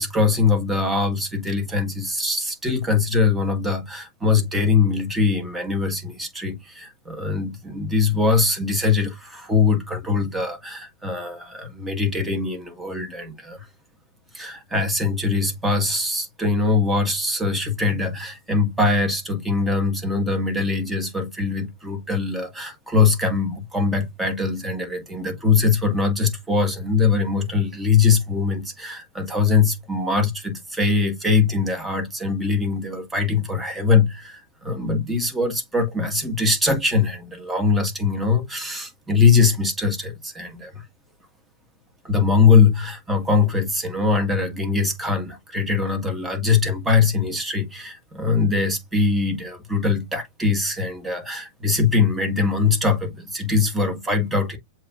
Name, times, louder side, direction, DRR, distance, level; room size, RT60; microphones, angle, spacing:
voice 1, 0.0-13.7 14.3-40.8 42.0-54.6, left 4 dB, 10° right, 1.6 m, -22 dB
7.4 x 2.8 x 2.5 m
figure-of-eight pair, 100°, 0 cm